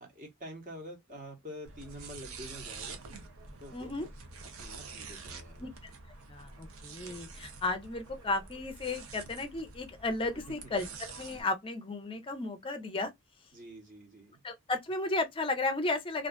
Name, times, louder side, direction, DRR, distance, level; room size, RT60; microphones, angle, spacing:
voice 1, 0.0-3.0 3.6-3.9 4.6-5.7 10.5-10.6 13.5-14.4, equal, 40° right, 1.0 m, -47 dB
sound 1, 1.6-11.4, right 4 dB, 85° right, 0.6 m, -47 dB
voice 2, 3.7-4.1 5.6-5.7 6.3-13.1 14.4-16.3, left 2 dB, 25° left, 0.5 m, -34 dB
2.5 x 2.3 x 2.2 m
head